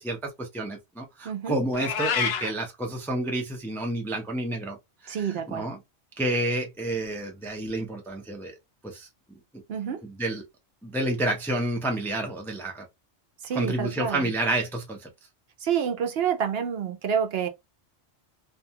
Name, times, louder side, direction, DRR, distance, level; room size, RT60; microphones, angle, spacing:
voice 1, 0.0-4.8 5.0-5.8 6.2-8.6 8.8-9.6 10.2-10.4 10.8-12.8 13.5-15.1, right 1 dB, 5° left, 0.4 m, -30 dB
voice 2, 1.2-1.6 5.1-5.7 9.7-10.0 13.4-14.3 15.6-17.5, right 7 dB, 65° right, 0.8 m, -28 dB
Meow, 1.7-2.5, left 6 dB, 65° left, 0.8 m, -27 dB
2.5 x 2.3 x 2.7 m
omnidirectional pair, 1.2 m